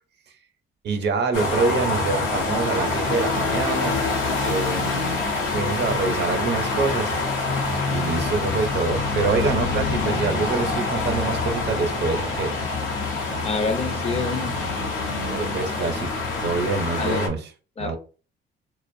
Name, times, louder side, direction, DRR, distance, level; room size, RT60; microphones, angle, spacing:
voice 1, 0.8-4.0 4.4-7.1 7.9-12.6 15.2-17.5 17.8-18.0, right 4 dB, 60° right, 0.6 m, -26 dB
sound 1, 1.3-17.3, left 3 dB, 90° left, 0.7 m, -26 dB
voice 2, 13.4-14.6 17.0-17.3 17.8-18.0, left 4 dB, 30° left, 0.4 m, -27 dB
2.4 x 2.0 x 2.5 m
cardioid pair, 90°, 20 cm